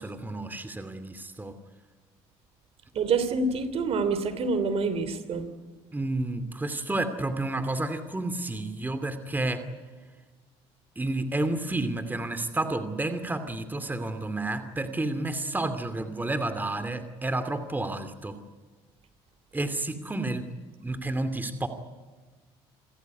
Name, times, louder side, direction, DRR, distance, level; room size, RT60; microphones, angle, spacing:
voice 1, 0.0-1.6 5.9-9.7 11.0-18.4 19.5-20.5 20.8-21.7, right 2 dB, 15° right, 10 dB, 2.6 m, -30 dB
voice 2, 2.9-5.5, right 4 dB, 55° right, 12 dB, 3.0 m, -27 dB
27.5 x 14.5 x 9.7 m, 1.4 s
supercardioid pair, 75°, 12 cm